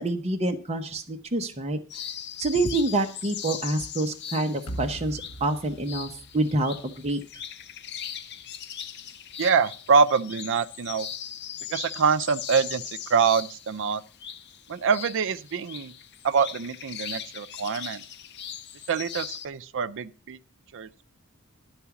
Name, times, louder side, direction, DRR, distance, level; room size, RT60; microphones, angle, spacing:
voice 1, 0.0-1.8 2.4-7.2, right 2 dB, 30° right, 0.7 m, -27 dB
sound 1, 1.9-19.5, left 9 dB, 55° left, 0.6 m, -39 dB
sound 2, 4.7-7.8, right 1 dB, 90° left, 1.1 m, -41 dB
voice 2, 9.4-11.1 11.7-12.8 13.1-14.0 14.7-15.9 16.2-18.0 18.9-20.4 20.7-21.0, right 5 dB, 60° right, 0.5 m, -25 dB
11.5 x 4.7 x 7.0 m
head